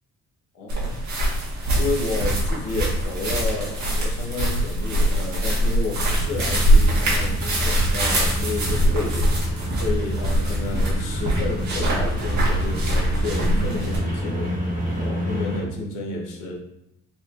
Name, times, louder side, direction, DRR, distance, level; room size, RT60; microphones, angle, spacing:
voice 1, 0.5-1.1 1.7-14.7 15.0-16.6, left 3 dB, 85° left, 0 dB, 1.0 m, -31 dB
sound 1, 0.7-14.0, right 1 dB, 70° right, 1.4 m, -23 dB
sound 2, 6.1-15.6, equal, 25° right, 1.5 m, -28 dB
4.3 x 2.8 x 2.4 m, 0.82 s
cardioid pair, 90°, 30 cm